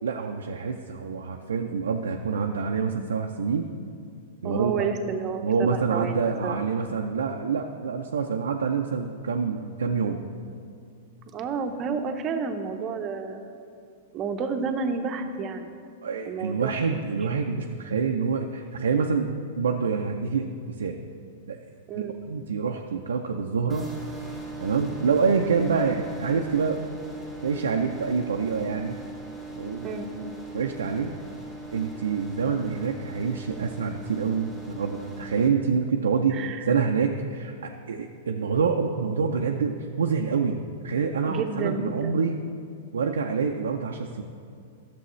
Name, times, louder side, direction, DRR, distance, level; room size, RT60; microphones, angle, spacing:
voice 1, 0.0-3.7 4.4-4.9 5.4-10.2 16.0-21.0 21.5-21.6 21.9-23.9 24.6-26.9 27.4-29.0 29.6-30.0 30.5-31.1 31.7-42.4 42.9-44.2, right 5 dB, 85° right, 2 dB, 0.4 m, -26 dB
voice 2, 4.4-6.6 11.3-13.5 14.1-15.8 16.2-16.8 17.2-17.3 21.9-22.2 29.8-30.3 36.3-36.9 41.2-42.3, right 5 dB, 35° right, 6 dB, 0.7 m, -31 dB
sound 1, 23.7-35.5, right 3 dB, 15° left, 2.0 m, -39 dB
11.5 x 6.9 x 3.1 m, 2.3 s
hypercardioid pair, 120°, 0 cm